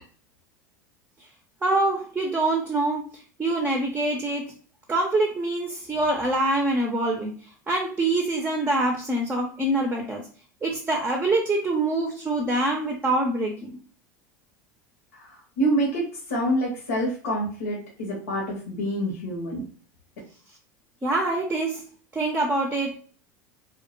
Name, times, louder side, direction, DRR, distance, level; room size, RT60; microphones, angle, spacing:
voice 1, 1.6-3.1 3.4-4.5 4.9-7.3 7.7-10.3 10.6-13.8 21.0-23.0, right 2 dB, 20° right, 2 dB, 0.5 m, -25 dB
voice 2, 15.1-19.6, right 1 dB, 85° left, -3 dB, 0.8 m, -27 dB
2.1 x 2.1 x 2.9 m, 0.42 s
hypercardioid pair, 95°, 9 cm